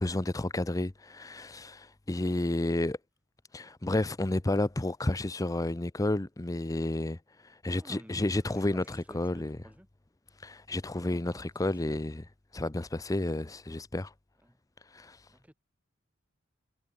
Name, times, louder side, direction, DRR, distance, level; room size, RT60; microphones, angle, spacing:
voice 1, 0.0-3.0 3.5-9.6 10.4-12.2 12.5-14.1 14.9-15.3, left 1 dB, 15° left, 0.6 m, -31 dB
voice 2, 7.6-9.9 10.9-12.0 14.4-14.6 15.3-15.5, equal, 5° right, 5.4 m, -53 dB
head